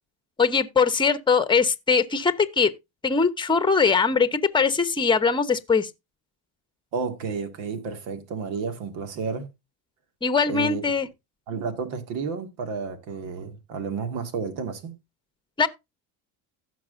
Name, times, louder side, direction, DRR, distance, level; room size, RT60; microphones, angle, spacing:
voice 1, 0.4-2.7 3.0-5.9 10.2-11.1 15.6-15.7, left 5 dB, 10° left, 0.9 m, -21 dB
voice 2, 6.9-9.5 10.5-10.8 11.5-15.0, right 5 dB, 85° right, 2.2 m, -31 dB
16.0 x 6.1 x 2.6 m
cardioid pair, 105°, 45 cm